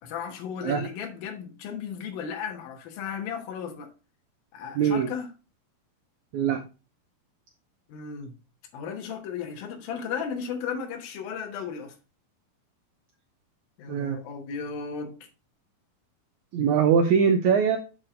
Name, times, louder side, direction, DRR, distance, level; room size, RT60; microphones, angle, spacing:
voice 1, 0.0-3.9 4.5-5.3 7.9-8.3 8.7-11.9 13.8-15.2, left 6 dB, 80° left, 3.0 m, -35 dB
voice 2, 4.7-5.1 6.3-6.6 13.9-14.2 16.5-17.8, right 7 dB, 85° right, 1.6 m, -22 dB
7.5 x 4.4 x 5.0 m
omnidirectional pair, 4.2 m